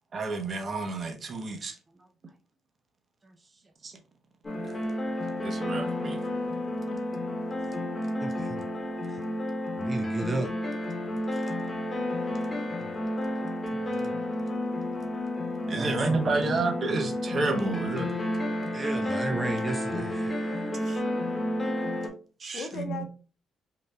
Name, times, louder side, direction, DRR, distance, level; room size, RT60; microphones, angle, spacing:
voice 1, 0.1-1.7 3.8-3.9 5.4-6.2 15.7-18.1 20.9-21.0 22.4-23.1, right 3 dB, 45° right, 0.9 m, -30 dB
sound 1, 4.4-22.1, left 1 dB, 25° left, 1.1 m, -31 dB
voice 2, 8.2-8.7 9.1-9.2 9.8-10.5 12.8-12.9 14.0-14.1 15.8-16.6 18.7-20.7, right 2 dB, 25° right, 0.5 m, -34 dB
voice 3, 20.4-21.3 22.5-23.1, left 6 dB, 70° left, 0.6 m, -40 dB
3.9 x 2.6 x 3.2 m
cardioid pair, 90°, 0 cm